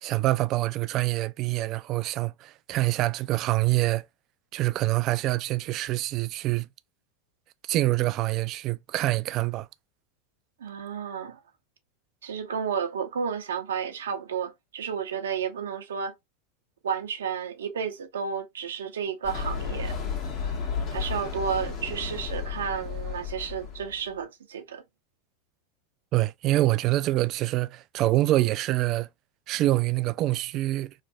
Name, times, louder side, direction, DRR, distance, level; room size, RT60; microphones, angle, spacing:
voice 1, 0.0-4.1 4.5-6.7 7.7-9.7 26.1-29.1 29.5-30.9, right 17 dB, 45° right, 0.3 m, -25 dB
voice 2, 10.6-11.4 12.2-16.1 16.8-20.0 20.9-24.8, right 7 dB, 90° right, 0.6 m, -32 dB
sound 1, 19.2-24.1, left 6 dB, 45° left, 1.1 m, -33 dB
3.1 x 2.2 x 2.7 m
hypercardioid pair, 110°, 0 cm